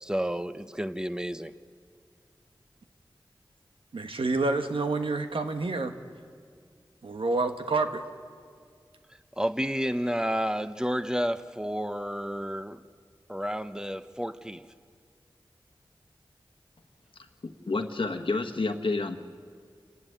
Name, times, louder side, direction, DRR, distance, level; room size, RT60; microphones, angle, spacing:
voice 1, 0.0-1.5 9.4-12.8 13.3-14.7, equal, 10° right, 11 dB, 0.9 m, -30 dB
voice 2, 3.9-5.9 7.0-8.0, right 3 dB, 85° right, 6 dB, 1.2 m, -28 dB
voice 3, 17.2-19.2, left 3 dB, 75° left, 7 dB, 1.3 m, -30 dB
28.0 x 11.0 x 9.5 m, 2.2 s
cardioid pair, 40°, 9 cm